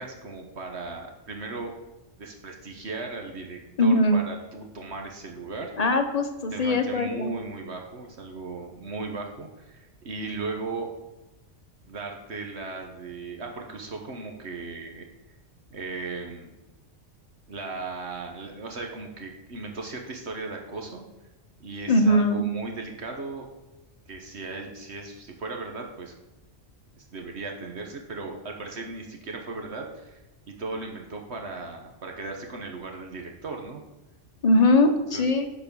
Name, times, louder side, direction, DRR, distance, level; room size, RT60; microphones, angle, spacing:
voice 1, 0.0-1.7 2.2-5.9 6.5-10.9 11.9-15.1 15.7-16.5 17.5-21.0 21.6-23.5 24.1-26.1 27.0-30.2 30.5-33.8 35.1-35.3, right 3 dB, 60° right, 2 dB, 1.4 m, -37 dB
voice 2, 3.8-4.2 5.8-7.3 21.9-22.4 34.4-35.5, left 1 dB, 35° left, 6 dB, 1.0 m, -21 dB
10.5 x 4.8 x 6.8 m, 1.0 s
omnidirectional pair, 1.3 m